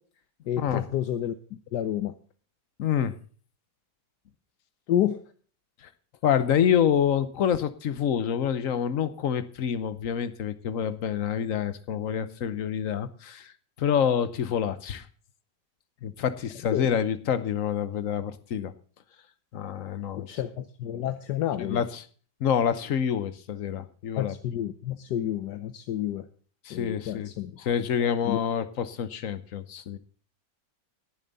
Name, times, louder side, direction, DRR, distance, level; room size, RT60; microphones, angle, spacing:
voice 1, 0.5-1.3 1.7-2.1 4.9-5.2 16.7-16.8 20.3-21.8 24.2-26.3 26.7-27.7 28.3-28.4, left 11 dB, 75° left, 10 dB, 1.4 m, -29 dB
voice 2, 2.8-3.1 6.2-13.5 13.8-15.1 16.0-18.7 19.5-20.3 21.6-22.0 22.4-24.3 26.6-30.0, left 8 dB, 55° left, 12 dB, 1.1 m, -27 dB
20.0 x 7.2 x 4.0 m, 0.43 s
omnidirectional pair, 1.8 m